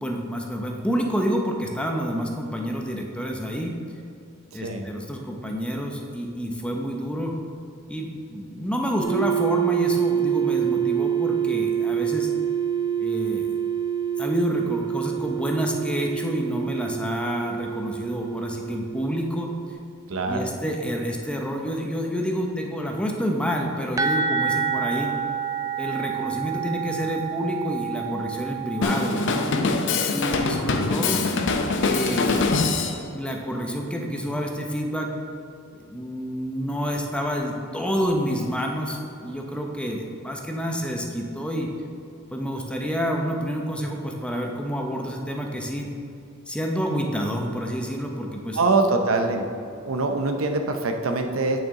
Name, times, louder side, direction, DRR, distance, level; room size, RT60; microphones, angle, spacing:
voice 1, 0.0-3.7 4.5-7.4 7.9-12.3 13.0-13.5 14.2-19.5 20.3-25.2 25.8-29.5 30.1-31.2 31.8-32.4 33.1-35.1 35.7-41.7 42.3-45.9 46.5-48.6, equal, 5° left, 1 dB, 0.7 m, -28 dB
voice 2, 4.5-4.9 20.1-20.6 48.5-49.5 49.8-51.6, right 3 dB, 75° right, 5 dB, 0.7 m, -24 dB
sound 1, 9.0-19.7, right 9 dB, 25° left, 1.3 m, -26 dB
sound 2, 24.0-29.6, right 6 dB, 15° right, 0.3 m, -28 dB
Drum kit, 28.8-33.0, left 3 dB, 65° left, 0.6 m, -23 dB
8.6 x 6.0 x 3.8 m, 2.6 s
head